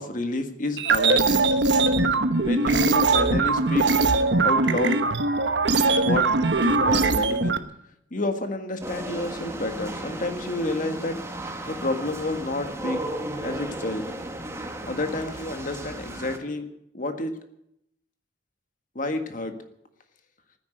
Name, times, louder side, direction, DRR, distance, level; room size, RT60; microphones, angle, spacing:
voice 1, 0.0-1.5 2.4-3.8 4.4-5.0 6.0-6.3 6.6-7.6 8.1-11.2 11.7-13.0 13.4-14.0 14.9-16.6 16.9-17.3 18.9-19.5, left 2 dB, 45° left, 7 dB, 1.7 m, -29 dB
sound 1, 0.8-7.6, right 3 dB, 65° right, 1.1 m, -21 dB
sound 2, 8.8-16.4, right 1 dB, 15° right, 1.6 m, -35 dB
14.5 x 10.0 x 9.1 m, 0.77 s
head